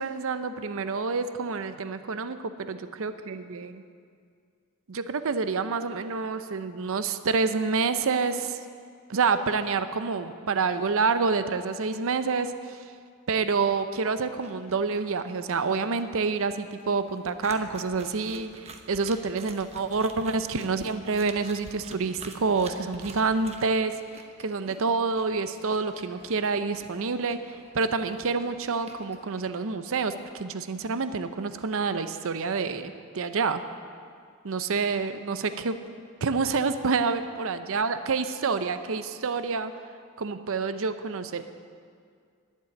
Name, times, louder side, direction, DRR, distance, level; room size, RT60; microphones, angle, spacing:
voice 1, 0.0-3.8 4.9-8.6 9.1-12.8 13.3-23.9 24.4-27.4 27.7-33.6 34.4-35.8 36.2-39.7 40.2-41.4, right 4 dB, 65° right, 11 dB, 0.6 m, -28 dB
sound 1, 13.5-29.6, right 3 dB, 30° right, 0.9 m, -48 dB
11.5 x 7.6 x 9.5 m, 2.2 s
head